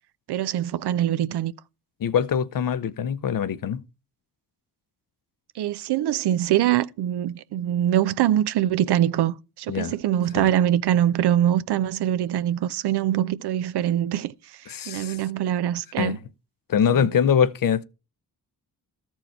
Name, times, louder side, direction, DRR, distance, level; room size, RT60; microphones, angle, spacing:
voice 1, 0.3-1.5 5.6-14.3 14.9-16.2 16.9-17.1, right 11 dB, 80° right, 0.6 m, -23 dB
voice 2, 2.0-3.8 9.7-9.9 10.4-10.5 14.7-15.2 16.0-16.2 16.7-17.8, left 8 dB, 55° left, 0.7 m, -23 dB
13.5 x 4.5 x 4.4 m
cardioid pair, 60°, 39 cm